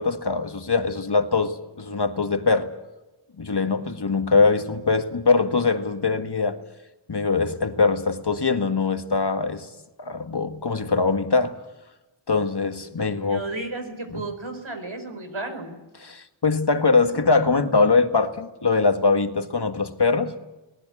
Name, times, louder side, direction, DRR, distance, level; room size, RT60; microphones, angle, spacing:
voice 1, 0.0-2.7 3.4-6.6 7.1-9.7 10.0-11.5 12.3-13.5 14.1-14.2 16.0-20.3, left 4 dB, 60° left, 7 dB, 1.8 m, -22 dB
voice 2, 13.1-15.7, right 2 dB, 85° right, 6 dB, 4.4 m, -33 dB
23.5 x 18.5 x 8.5 m, 1.1 s
wide cardioid pair, 55°, 46 cm